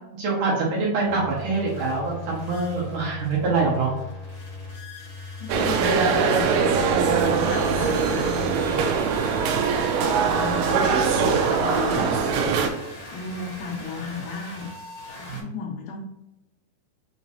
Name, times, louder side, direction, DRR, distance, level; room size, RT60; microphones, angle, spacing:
voice 1, 0.2-3.9 15.3-15.5, right 3 dB, 65° right, -5 dB, 2.3 m, -25 dB
sound 1, 1.0-15.4, left 3 dB, 65° left, 1.3 m, -39 dB
voice 2, 5.4-6.7 7.2-8.5 9.9-12.2 13.1-14.7 15.2-16.0, left 4 dB, 80° left, 0 dB, 2.2 m, -34 dB
sound 2, 5.5-12.7, right 5 dB, 90° right, 2.6 m, -22 dB
6.1 x 2.9 x 2.7 m, 0.94 s
omnidirectional pair, 4.5 m